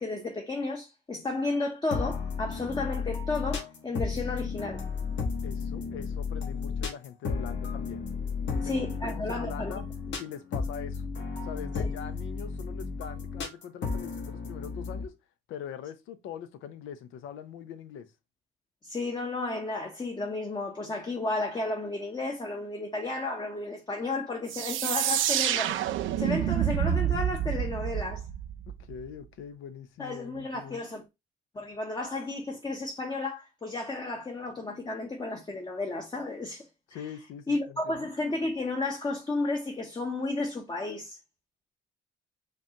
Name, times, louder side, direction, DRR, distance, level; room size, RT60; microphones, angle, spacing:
voice 1, 0.0-4.8 8.6-9.8 11.8-11.9 18.8-25.8 26.2-28.3 30.0-31.0 31.5-37.1 37.5-41.2, left 2 dB, 20° left, 0.8 m, -33 dB
sound 1, 1.9-15.0, left 5 dB, 65° left, 1.2 m, -33 dB
voice 2, 5.4-8.1 8.5-9.9 10.2-11.0 11.4-15.1 15.5-18.1 28.9-30.8 36.9-38.1, left 8 dB, 90° left, 0.6 m, -42 dB
sound 2, 24.5-29.1, right 11 dB, 75° right, 0.4 m, -28 dB
5.2 x 2.3 x 2.8 m
cardioid pair, 90°, 20 cm